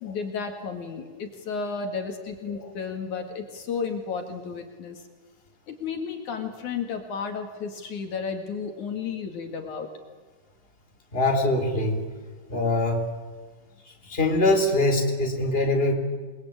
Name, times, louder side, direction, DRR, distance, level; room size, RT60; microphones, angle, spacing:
voice 1, 0.0-5.0 5.7-9.9, left 5 dB, 65° left, 5 dB, 3.5 m, -33 dB
voice 2, 11.1-12.0 12.5-13.0 14.1-15.9, left 2 dB, 15° left, 3 dB, 3.9 m, -23 dB
28.5 x 21.5 x 8.9 m, 1.5 s
omnidirectional pair, 3.7 m